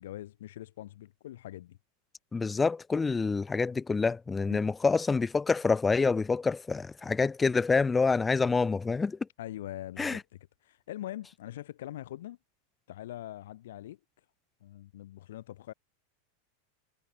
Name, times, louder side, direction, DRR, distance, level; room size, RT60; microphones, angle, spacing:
voice 1, 0.0-1.8 4.5-4.6 9.4-10.2 10.6-12.4 12.9-14.0 14.6-15.7, left 13 dB, 75° left, 7.5 m, -42 dB
voice 2, 2.3-9.2 10.0-10.2, left 4 dB, 10° left, 1.3 m, -27 dB
supercardioid pair, 165°, 0 cm